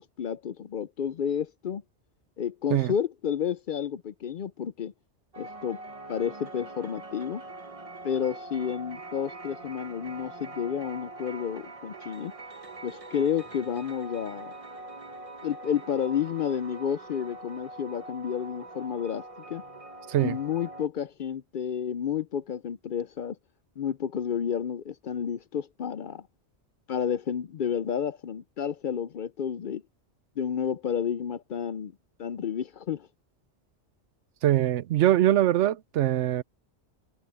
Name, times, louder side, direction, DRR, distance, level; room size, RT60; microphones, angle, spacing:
voice 1, 0.0-1.8 2.4-4.9 5.4-5.8 6.1-7.4 8.0-12.3 12.8-14.5 15.4-19.6 20.2-23.4 23.8-26.2 26.9-29.8 30.4-31.9 32.2-33.1, left 8 dB, 55° left, 0.6 m, -31 dB
sound 1, 5.3-20.9, right 2 dB, 35° right, 1.0 m, -43 dB
voice 2, 34.4-36.4, right 13 dB, 90° right, 0.9 m, -23 dB
omnidirectional pair, 1.2 m